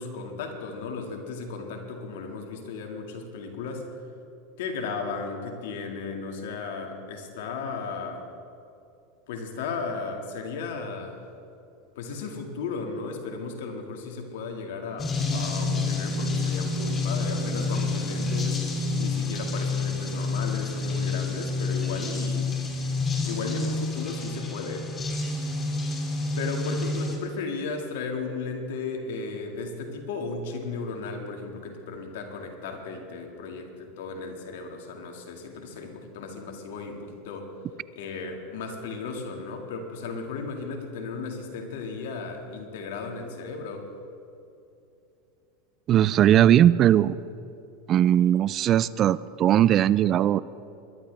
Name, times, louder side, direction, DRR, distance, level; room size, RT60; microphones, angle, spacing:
voice 1, 0.0-3.9 4.6-8.3 9.3-11.2 12.0-22.5 23.2-24.9 26.4-37.5 37.9-43.9, left 4 dB, 75° left, 3 dB, 2.1 m, -35 dB
sound 1, 15.0-27.2, left 3 dB, 25° left, 2.6 m, -28 dB
voice 2, 45.9-47.1 47.9-50.4, right 11 dB, 40° right, 18 dB, 0.4 m, -19 dB
21.5 x 12.0 x 3.5 m, 2.7 s
supercardioid pair, 115°, 0 cm